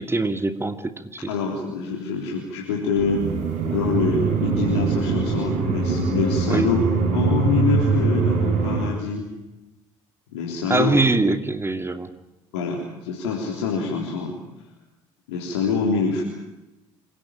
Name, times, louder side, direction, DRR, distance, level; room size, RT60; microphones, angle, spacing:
voice 1, 0.0-1.3 6.5-6.7 10.7-12.1, right 3 dB, 15° right, 8 dB, 2.4 m, -23 dB
voice 2, 1.3-3.3 3.7-6.8 7.1-9.3 10.3-11.0 12.5-14.4 15.3-16.2, left 5 dB, 80° left, -2 dB, 3.6 m, -25 dB
sound 1, 3.0-8.9, right 5 dB, 65° right, 4.2 m, -23 dB
27.0 x 17.0 x 9.0 m, 1.0 s
hypercardioid pair, 55°, 14 cm